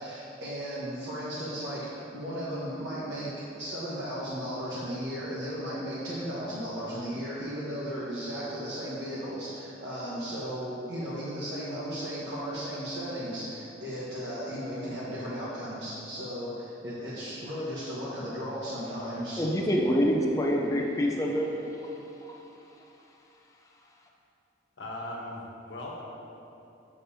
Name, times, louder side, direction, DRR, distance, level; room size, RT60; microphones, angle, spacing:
voice 1, 0.0-3.3 3.6-19.5, equal, 75° right, -8 dB, 1.1 m, -35 dB
voice 2, 19.4-21.5 21.8-21.9 22.2-22.3, equal, 20° left, -1 dB, 0.5 m, -26 dB
voice 3, 24.8-26.0, left 1 dB, 85° left, -2 dB, 1.1 m, -38 dB
7.5 x 7.0 x 2.7 m, 2.8 s
head